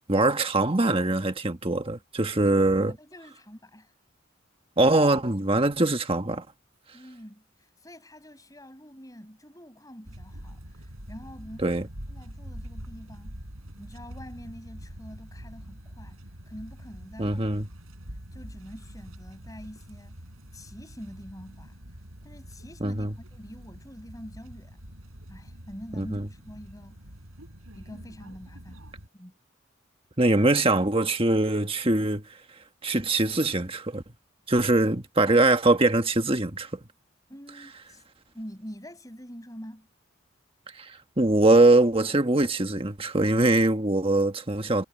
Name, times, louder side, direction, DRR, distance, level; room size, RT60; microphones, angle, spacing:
voice 1, 0.1-2.9 4.8-6.4 11.6-11.9 17.2-17.7 22.8-23.1 26.0-26.2 30.2-32.2 32.8-34.0 34.5-36.7 40.7-44.8, right 2 dB, 25° right, 1.5 m, -22 dB
voice 2, 2.4-3.9 6.9-13.4 13.8-16.2 16.5-17.5 18.3-20.2 20.5-21.8 22.2-24.8 25.3-27.0 27.7-28.8 29.1-29.4 37.3-38.0 38.3-39.9, equal, 15° left, 8.0 m, -45 dB
sound 1, 10.0-29.1, equal, 90° right, 7.6 m, -45 dB
head